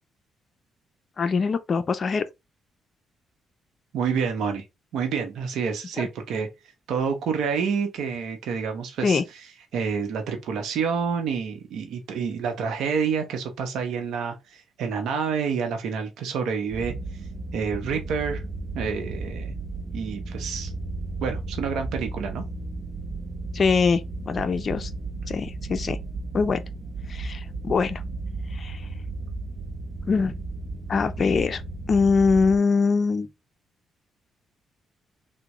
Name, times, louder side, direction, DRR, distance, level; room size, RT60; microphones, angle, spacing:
voice 1, 1.2-2.2 9.0-9.2 23.5-24.9 25.3-26.0 26.3-26.6 27.1-28.0 28.6-28.8 30.1-30.3 30.9-31.6 31.9-33.3, left 5 dB, 45° left, 0.5 m, -23 dB
voice 2, 3.9-4.6 4.9-6.5 6.9-9.5 9.7-16.9 17.5-18.4 18.7-19.5 19.9-20.7 21.2-22.4, right 6 dB, 80° right, 0.7 m, -28 dB
sound 1, 16.7-32.6, right 3 dB, 50° right, 0.6 m, -34 dB
3.5 x 2.2 x 3.0 m
cardioid pair, 90°, 0 cm